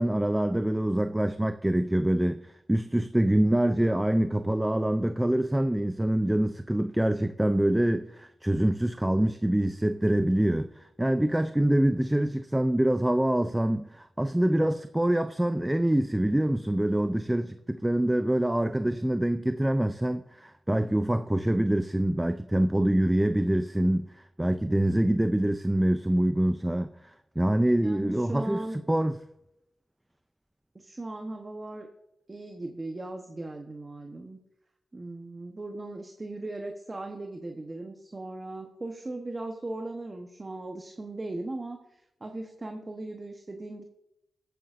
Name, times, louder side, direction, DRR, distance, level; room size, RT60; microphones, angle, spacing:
voice 1, 0.0-28.6 28.9-29.2, right 1 dB, 10° right, 0.4 m, -25 dB
voice 2, 27.8-28.8 30.7-31.9 32.3-34.4 34.9-43.8, right 2 dB, 30° right, 1.0 m, -38 dB
18.5 x 9.1 x 2.5 m
wide cardioid pair, 90°, 0 cm